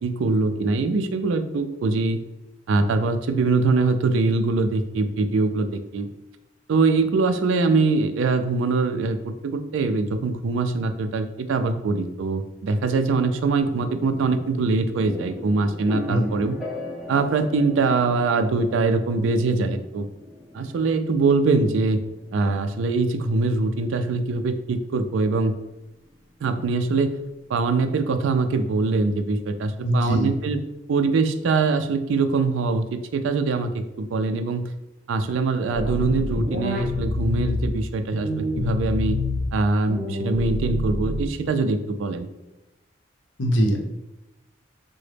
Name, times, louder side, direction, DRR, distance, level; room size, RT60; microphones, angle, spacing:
voice 1, 0.0-2.2 2.7-6.1 6.7-16.6 17.1-20.1 20.5-22.0 22.3-25.6 26.4-27.2 27.5-30.6 30.9-34.7 35.1-39.2 39.5-42.3, right 3 dB, 85° right, 9 dB, 0.3 m, -23 dB
sound 1, 13.6-27.4, left 1 dB, ahead, 0.4 m, -39 dB
voice 2, 29.8-30.3 43.4-43.8, right 1 dB, 80° left, 1 dB, 0.7 m, -21 dB
sound 2, 35.7-37.7 38.1-39.5 39.9-41.5, left 1 dB, 45° right, 0.9 m, -27 dB
3.7 x 2.1 x 3.3 m, 0.99 s
head